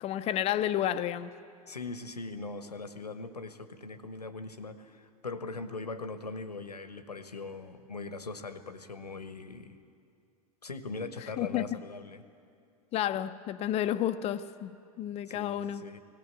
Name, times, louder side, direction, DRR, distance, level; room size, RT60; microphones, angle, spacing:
voice 1, 0.0-1.3 11.4-11.8 12.9-15.8, left 11 dB, 30° left, 0.7 m, -31 dB
voice 2, 1.7-9.8 10.6-12.2 15.3-16.0, left 3 dB, 85° left, 1.2 m, -41 dB
18.5 x 18.0 x 8.3 m
figure-of-eight pair, 90°, 20 cm